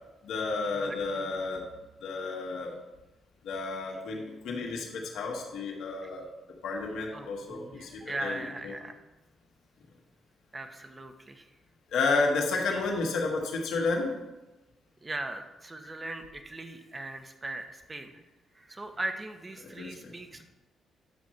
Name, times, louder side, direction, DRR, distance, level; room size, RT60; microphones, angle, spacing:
voice 1, 0.2-1.6 2.0-2.8 3.4-6.3 6.6-8.7 11.9-14.1 19.6-20.1, left 3 dB, 80° left, -1 dB, 1.9 m, -31 dB
voice 2, 7.1-9.0 10.5-11.5 15.0-18.2 18.5-20.4, right 2 dB, 25° right, 6 dB, 1.2 m, -39 dB
10.0 x 6.3 x 4.5 m, 1.1 s
supercardioid pair, 65°, 0 cm